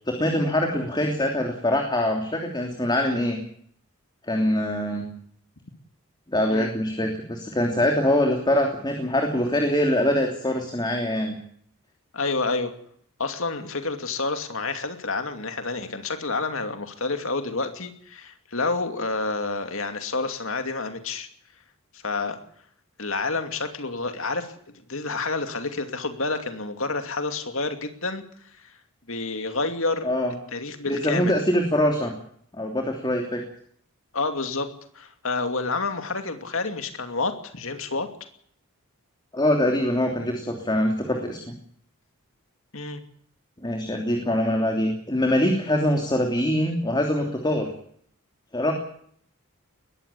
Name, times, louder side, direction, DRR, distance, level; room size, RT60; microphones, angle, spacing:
voice 1, 0.1-3.4 4.3-5.0 6.3-11.3 30.0-30.3 30.9-32.1 32.6-33.4 39.3-41.5 43.6-47.7 48.5-48.7, left 1 dB, 20° left, 2 dB, 3.1 m, -23 dB
voice 2, 12.1-12.7 13.2-21.3 22.0-22.4 23.0-24.5 24.9-28.2 28.6-28.7 29.1-30.1 30.5-31.4 34.1-38.1 42.7-43.0, left 3 dB, 60° left, 7 dB, 2.7 m, -29 dB
21.0 x 15.0 x 8.6 m, 0.64 s
head